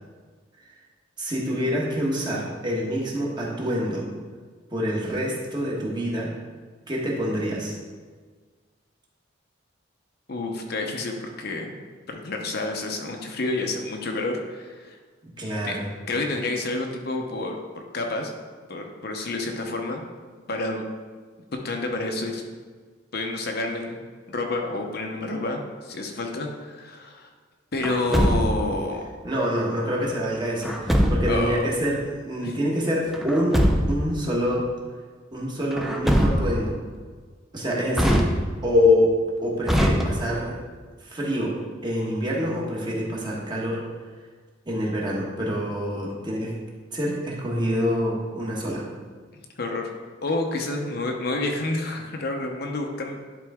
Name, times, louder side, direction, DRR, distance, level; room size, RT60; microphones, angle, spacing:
voice 1, 1.2-4.1 4.7-6.3 6.9-7.7 15.2-15.9 29.2-34.7 35.3-36.8 37.5-38.3 38.6-39.1 39.4-40.6 41.0-41.6 41.8-43.8 44.7-46.5 46.9-48.9, left 1 dB, 20° right, -4 dB, 1.3 m, -26 dB
voice 2, 10.3-11.7 12.1-15.0 15.6-15.8 16.1-17.6 17.9-18.3 18.7-20.0 20.5-20.8 21.6-22.4 23.1-24.0 24.3-27.3 27.7-29.0 31.3-31.6 32.4-32.6 49.3-49.9 50.2-53.2, left 2 dB, 55° left, 2 dB, 0.8 m, -29 dB
Truck, 27.8-28.8 30.6-31.5 33.1-34.1 35.7-36.7 37.9-38.8 39.6-40.5, equal, ahead, 0.5 m, -22 dB
11.0 x 3.9 x 3.6 m, 1.5 s
head